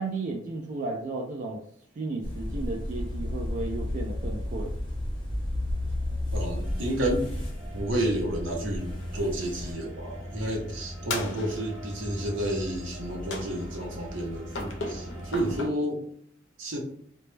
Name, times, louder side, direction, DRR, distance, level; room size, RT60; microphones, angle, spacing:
voice 1, 0.0-1.6 2.0-4.8, right 3 dB, 40° right, 0 dB, 0.3 m, -34 dB
sound 1, 2.2-9.7, left 1 dB, 25° left, 0.8 m, -33 dB
voice 2, 6.3-16.0 16.6-16.8, right 1 dB, 75° right, 1 dB, 0.7 m, -31 dB
sound 2, 6.6-15.6, equal, 5° right, 0.8 m, -40 dB
sound 3, 11.1-11.9 13.3-13.9 14.5-15.7, left 2 dB, 70° left, 0.5 m, -36 dB
2.2 x 2.0 x 3.1 m, 0.62 s
head